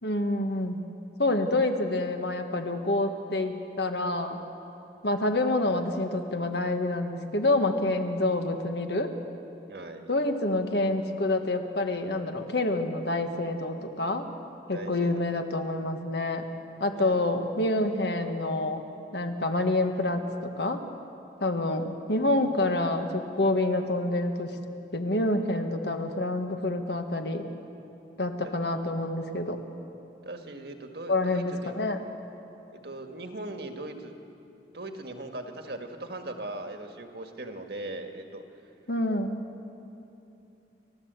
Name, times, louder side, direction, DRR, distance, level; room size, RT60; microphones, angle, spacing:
voice 1, 0.0-0.8 1.2-4.4 5.0-9.1 10.1-14.2 14.7-16.4 16.8-18.8 19.1-20.2 20.6-20.8 21.4-24.6 24.9-27.5 28.2-29.6 31.1-32.0 38.9-39.4, left 2 dB, 65° left, 6 dB, 1.5 m, -27 dB
voice 2, 9.7-10.1 14.7-15.2 17.0-17.2 28.4-28.5 30.2-31.8 32.7-34.1 34.7-38.4, right 2 dB, 60° right, 5 dB, 1.7 m, -39 dB
29.5 x 12.5 x 8.1 m, 2.8 s
head